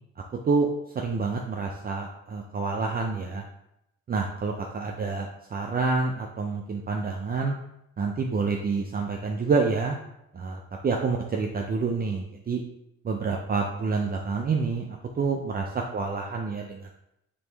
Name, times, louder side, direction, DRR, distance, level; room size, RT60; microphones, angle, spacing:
voice 1, 0.9-3.4 4.1-7.5 8.0-10.0 10.3-12.6 13.0-16.9, right 4 dB, 30° right, 1 dB, 0.5 m, -28 dB
5.3 x 3.0 x 3.3 m, 0.80 s
cardioid pair, 90°, 30 cm